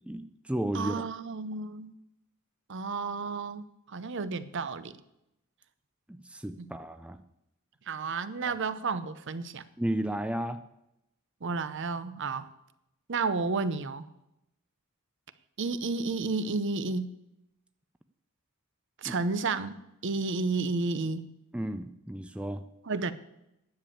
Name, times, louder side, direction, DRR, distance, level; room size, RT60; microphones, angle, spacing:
voice 1, 0.1-0.9 6.1-7.2 9.8-10.6 19.0-19.2 21.5-22.6, right 1 dB, 5° right, 9 dB, 0.4 m, -33 dB
voice 2, 0.7-1.9 2.7-4.9 6.6-6.7 7.9-9.7 11.4-12.5 13.1-14.1 15.6-17.1 19.0-19.8 20.0-21.3 22.9-23.1, right 4 dB, 55° right, 13 dB, 0.7 m, -31 dB
10.5 x 7.0 x 8.6 m, 0.85 s
head